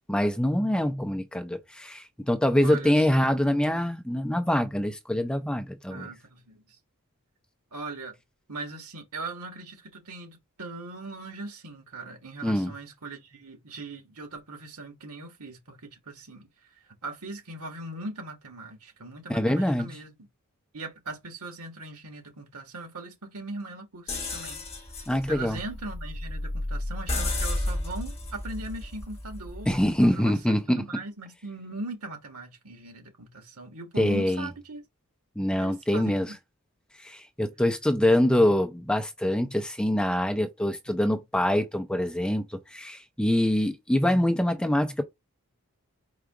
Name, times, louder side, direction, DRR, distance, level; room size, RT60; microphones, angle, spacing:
voice 1, 0.1-6.1 12.4-12.7 19.3-19.9 25.1-25.6 29.7-30.8 34.0-34.5 35.4-36.3 37.0-45.0, left 1 dB, 5° left, 0.5 m, -25 dB
voice 2, 2.6-3.3 5.9-6.8 7.7-8.2 8.5-16.5 17.0-20.2 20.7-24.6 24.9-34.8 35.6-36.2, right 2 dB, 85° right, 1.6 m, -40 dB
sound 1, 24.1-29.9, left 1 dB, 30° left, 1.3 m, -32 dB
4.8 x 2.4 x 4.7 m
head